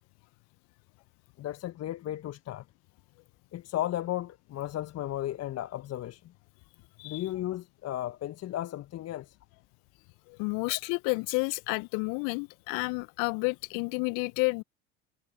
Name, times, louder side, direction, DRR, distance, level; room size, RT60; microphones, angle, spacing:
voice 1, 1.4-2.6 3.5-6.2 7.0-9.4 10.7-10.8, left 13 dB, 45° left, 1.6 m, -35 dB
voice 2, 10.3-14.6, left 32 dB, 60° left, 1.5 m, -30 dB
figure-of-eight pair, 65°, 36 cm